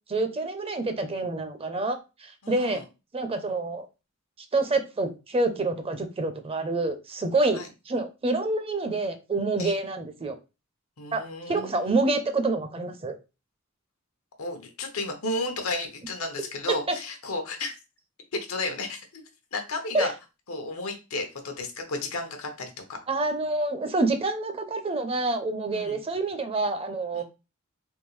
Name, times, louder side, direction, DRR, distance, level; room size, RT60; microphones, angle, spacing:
voice 1, 0.1-2.8 3.1-3.9 4.5-7.6 7.9-10.4 11.1-11.2 11.5-13.2 16.9-17.0 19.9-20.1 23.1-27.2, right 2 dB, 25° right, 0.5 m, -27 dB
voice 2, 2.4-2.8 7.5-7.7 9.6-9.7 11.0-12.0 14.4-17.7 18.3-19.2 19.5-20.1 20.5-23.0 25.7-26.0 27.1-27.2, left 2 dB, 85° left, 0.9 m, -33 dB
3.6 x 2.7 x 3.1 m
head